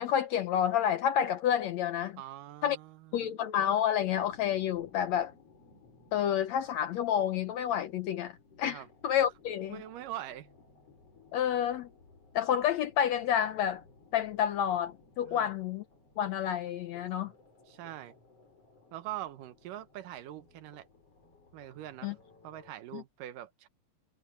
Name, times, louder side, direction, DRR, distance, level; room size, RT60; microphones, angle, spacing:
voice 1, 0.0-2.2 2.6-2.8 3.1-5.3 6.1-8.3 8.6-9.8 11.3-11.9 12.3-13.8 14.1-15.8 16.2-17.3 22.0-22.1 22.9-23.0, left 9 dB, 70° left, 1.7 m, -29 dB
voice 2, 2.2-3.3 8.6-8.9 9.7-10.5 15.2-15.5 17.7-18.1 18.9-20.9 21.5-22.2 22.4-23.7, right 13 dB, 75° right, 2.6 m, -43 dB
sound 1, 4.0-22.7, left 3 dB, 45° left, 7.7 m, -60 dB
omnidirectional pair, 3.9 m